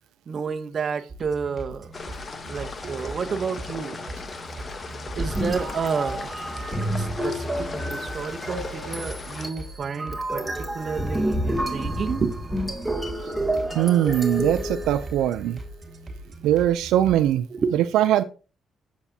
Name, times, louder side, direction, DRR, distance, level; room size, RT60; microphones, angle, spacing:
voice 1, 0.3-1.9 2.4-4.0 5.1-6.3 7.0-12.4 17.5-17.8, right 5 dB, 50° right, 0.8 m, -30 dB
sound 1, 1.1-17.3, right 2 dB, 30° right, 2.3 m, -41 dB
sound 2, 1.9-9.5, left 4 dB, 35° left, 1.0 m, -38 dB
sound 3, 5.2-15.5, right 1 dB, ahead, 2.4 m, -29 dB
voice 2, 13.7-15.6 16.4-17.5 17.7-18.2, right 11 dB, 90° right, 0.4 m, -21 dB
9.6 x 7.1 x 2.7 m
cardioid pair, 90°, 0 cm